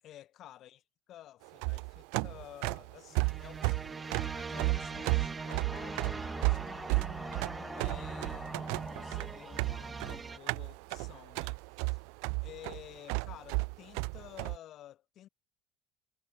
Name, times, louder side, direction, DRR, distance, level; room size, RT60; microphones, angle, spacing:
voice 1, 0.0-0.8 1.1-7.1 7.5-12.0 12.4-15.3, left 12 dB, 55° left, 7.8 m, -52 dB
sound 1, 1.5-14.6, right 40 dB or more, 75° right, 0.5 m, -33 dB
sound 2, 3.1-10.4, right 4 dB, 20° right, 2.5 m, -41 dB
sound 3, 5.0-10.2, left 3 dB, 15° left, 3.6 m, -49 dB
supercardioid pair, 90°, 0 cm